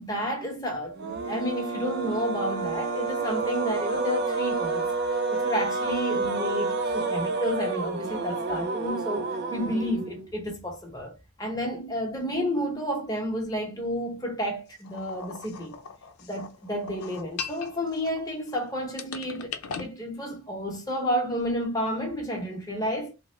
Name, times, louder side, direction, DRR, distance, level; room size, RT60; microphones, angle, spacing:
voice 1, 0.0-4.9 5.3-15.8 16.2-23.1, equal, 15° left, 0.9 m, -31 dB
sound 1, 0.9-10.3, right 3 dB, 50° right, 0.3 m, -29 dB
sound 2, 14.8-18.6 19.0-19.9, left 6 dB, 80° left, 0.5 m, -39 dB
3.4 x 2.1 x 3.1 m
head